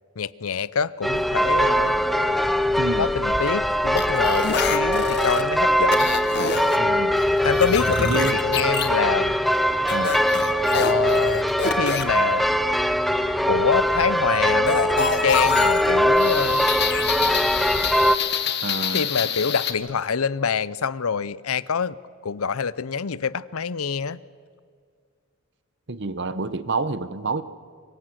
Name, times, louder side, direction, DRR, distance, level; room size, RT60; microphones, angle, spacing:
voice 1, 0.2-2.0 3.0-6.1 7.4-9.4 10.7-12.5 13.4-16.6 18.9-22.0 22.2-24.2, left 6 dB, 80° left, 0.7 m, -26 dB
sound 1, 1.0-18.2, equal, ahead, 0.6 m, -21 dB
voice 2, 2.8-3.1 6.8-7.1 8.0-8.4 9.9-10.2 18.6-19.1 25.9-27.4, right 3 dB, 55° right, 1.0 m, -28 dB
sound 2, 4.0-5.4 5.9-6.8 7.2-8.9 9.9-12.0 14.7-19.7, left 6 dB, 50° left, 1.5 m, -27 dB
sound 3, 6.9-16.1, equal, 35° right, 6.5 m, -40 dB
25.0 x 22.5 x 7.7 m
head